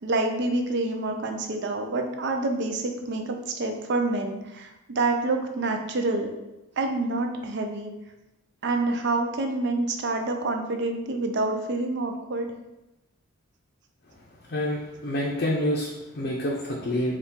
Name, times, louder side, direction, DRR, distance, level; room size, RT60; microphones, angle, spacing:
voice 1, 0.0-6.3 6.8-7.9 8.6-12.5, right 2 dB, 55° right, 4 dB, 0.5 m, -27 dB
voice 2, 14.5-17.2, equal, 45° left, -4 dB, 0.6 m, -27 dB
4.4 x 2.3 x 3.6 m, 0.97 s
head